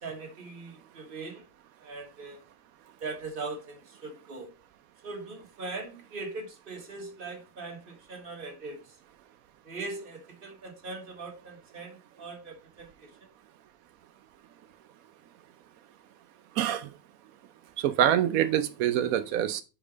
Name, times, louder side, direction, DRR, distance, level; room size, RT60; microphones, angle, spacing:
voice 1, 0.0-1.4 1.8-2.4 3.0-4.5 5.0-9.0 9.6-13.3, right 3 dB, 40° right, 1.6 m, -40 dB
voice 2, 16.6-16.9 17.8-19.6, right 10 dB, 90° right, 1.0 m, -25 dB
5.3 x 4.8 x 4.9 m
omnidirectional pair, 1.4 m